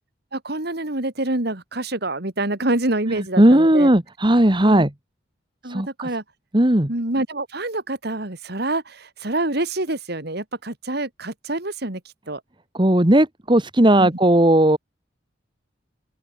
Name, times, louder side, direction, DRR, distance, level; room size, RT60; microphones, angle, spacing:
voice 1, 0.3-3.9 4.6-4.9 5.6-6.2 6.9-12.0 12.3-12.4 14.0-14.1, right 2 dB, 55° right, 2.6 m, -26 dB
voice 2, 3.1-4.9 5.7-6.1 6.5-6.9 12.7-14.8, right 1 dB, 25° right, 1.6 m, -16 dB
open air
head